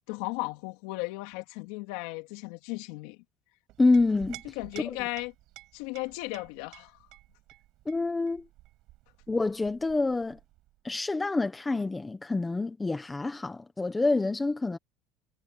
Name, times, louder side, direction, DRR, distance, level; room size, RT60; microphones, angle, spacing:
voice 1, 0.1-3.2 4.6-5.3 5.7-7.1, left 23 dB, 85° left, 3.5 m, -36 dB
Chink clink, 3.7-10.8, right 17 dB, 55° right, 5.5 m, -52 dB
voice 2, 3.8-4.4 7.8-8.5 9.3-10.4 10.8-14.8, left 3 dB, 10° left, 1.2 m, -27 dB
cardioid pair, 170°, 0 cm